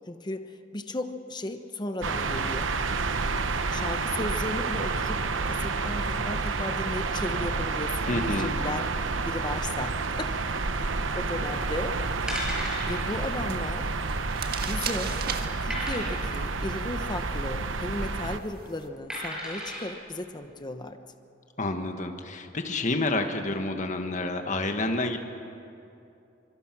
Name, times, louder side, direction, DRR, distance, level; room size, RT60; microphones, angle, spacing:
voice 1, 0.0-2.7 3.5-8.9 9.2-10.4 10.8-10.9 11.1-12.0 12.9-13.9 14.6-15.2 15.6-21.0, left 2 dB, 25° left, 7 dB, 1.0 m, -35 dB
sound 1, 2.0-18.4, right 4 dB, 85° right, 1.0 m, -29 dB
voice 2, 8.1-8.5 21.6-25.2, left 2 dB, 40° left, 5 dB, 1.5 m, -29 dB
sound 2, 11.4-18.9, right 6 dB, 50° right, 1.6 m, -41 dB
sound 3, 12.3-13.0 13.3-13.5 13.8-13.9 14.4-14.9 15.7-16.4 17.7-18.1 19.1-19.8 20.4-20.5, equal, 5° right, 6.9 m, -35 dB
24.5 x 24.0 x 6.1 m, 2.6 s
head